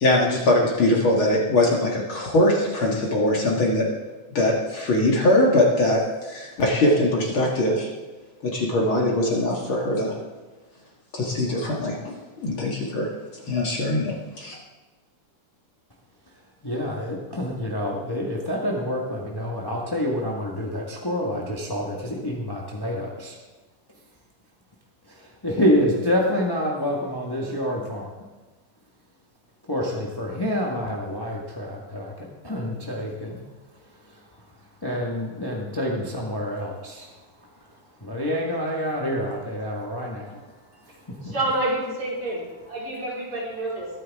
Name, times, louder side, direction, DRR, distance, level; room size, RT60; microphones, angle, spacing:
voice 1, 0.0-3.9 4.3-7.9 8.4-10.1 11.1-12.2 12.4-13.1 13.5-14.6, left 1 dB, 45° left, -2 dB, 2.4 m, -22 dB
voice 2, 16.6-23.3 25.4-28.1 29.7-33.4 34.0-34.2 34.8-37.1 37.6-37.7 38.0-41.3, equal, 15° left, -2 dB, 0.7 m, -27 dB
voice 3, 41.2-42.4 42.7-43.9, right 2 dB, 45° right, -6 dB, 5.3 m, -28 dB
22.5 x 9.5 x 3.6 m, 1.2 s
omnidirectional pair, 3.4 m